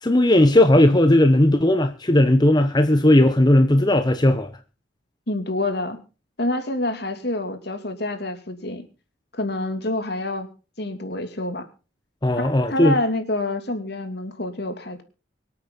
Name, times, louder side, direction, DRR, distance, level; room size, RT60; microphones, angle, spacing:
voice 1, 0.0-4.5 12.2-12.9, left 1 dB, 20° left, 0.9 m, -16 dB
voice 2, 5.3-6.0 6.4-8.8 9.3-10.5 10.8-11.7 12.4-15.0, left 2 dB, 60° left, 2.8 m, -27 dB
24.5 x 8.8 x 4.0 m
head